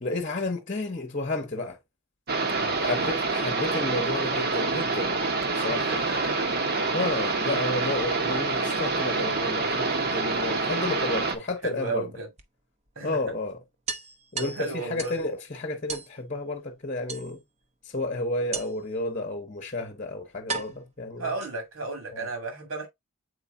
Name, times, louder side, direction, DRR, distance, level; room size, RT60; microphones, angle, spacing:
voice 1, 0.0-1.8 2.8-5.2 5.5-5.9 6.9-12.1 13.0-13.6 14.3-17.4 17.8-21.3 22.1-22.3, left 2 dB, 35° left, 1.0 m, -31 dB
sound 1, 2.3-11.4, right 3 dB, 45° right, 1.1 m, -27 dB
voice 2, 2.6-3.1 5.8-6.6 11.6-12.3 13.0-13.2 14.4-15.2 21.2-22.9, right 3 dB, 75° right, 2.6 m, -34 dB
sound 2, 9.9-10.9 12.4-12.5 12.9-13.0 13.3-13.4 13.9-15.3 15.9-16.1 17.1-17.6 18.5-19.0 19.8-19.9 20.5-21.8, right 4 dB, 30° right, 0.8 m, -36 dB
7.9 x 4.7 x 2.7 m
head